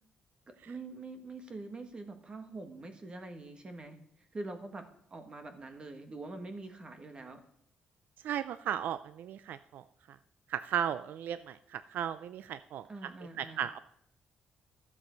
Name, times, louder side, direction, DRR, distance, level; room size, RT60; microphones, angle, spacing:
voice 1, 0.5-7.4 12.9-13.7, right 2 dB, 30° right, 7 dB, 1.6 m, -45 dB
voice 2, 8.2-9.8 10.5-12.8 13.4-13.8, right 9 dB, 75° right, 13 dB, 0.4 m, -35 dB
12.5 x 7.4 x 5.2 m, 0.71 s
cardioid pair, 120°, 3 cm